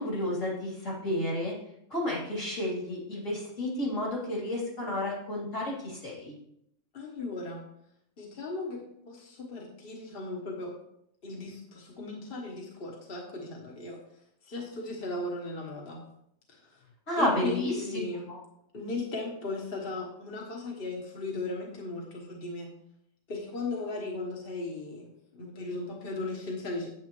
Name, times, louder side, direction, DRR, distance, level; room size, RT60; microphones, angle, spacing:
voice 1, 0.0-1.5 1.9-6.4 17.1-18.0 18.3-18.4, left 1 dB, 85° left, -5 dB, 3.5 m, -31 dB
voice 2, 6.9-7.6 8.2-10.7 11.2-14.0 14.4-16.0 16.5-16.9 17.2-18.3 18.7-22.7 23.3-26.9, left 2 dB, 50° left, -1 dB, 1.4 m, -37 dB
8.8 x 8.4 x 3.0 m, 0.75 s
omnidirectional pair, 1.3 m